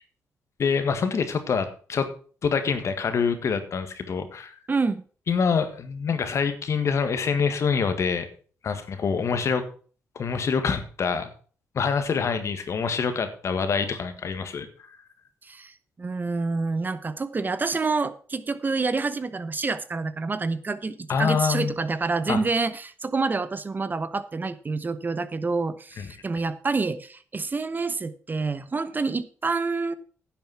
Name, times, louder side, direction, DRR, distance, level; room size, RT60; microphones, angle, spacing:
voice 1, 0.6-2.1 2.4-4.6 5.3-8.3 8.6-9.7 10.2-11.3 11.7-15.0 21.1-21.7 22.3-22.4 26.0-26.1, left 6 dB, 60° left, 9 dB, 1.7 m, -26 dB
voice 2, 4.7-5.0 15.4-29.9, right 3 dB, 35° right, 14 dB, 0.9 m, -28 dB
10.5 x 7.2 x 5.8 m, 0.41 s
supercardioid pair, 60°, 6 cm